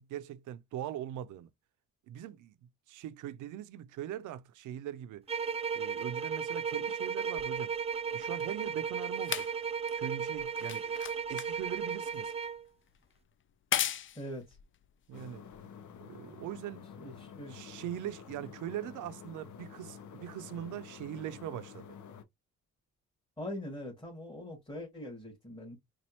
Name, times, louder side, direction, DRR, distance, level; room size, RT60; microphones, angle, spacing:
voice 1, 0.0-1.5 2.1-2.6 2.9-5.3 5.7-7.7 8.1-9.5 10.0-11.0 11.3-12.3 15.1-15.4 16.0-16.9 17.5-22.0, right 11 dB, 80° right, 0.5 m, -41 dB
sound 1, 5.3-12.6, right 6 dB, 20° right, 0.3 m, -35 dB
sound 2, 7.4-16.0 16.8-16.9, left 10 dB, 40° left, 0.4 m, -39 dB
voice 2, 14.2-14.6 17.0-17.6 23.4-25.8, left 1 dB, 15° left, 2.2 m, -42 dB
sound 3, 15.1-22.2, left 7 dB, 70° left, 0.8 m, -49 dB
4.3 x 2.4 x 2.8 m
cardioid pair, 90°, 30 cm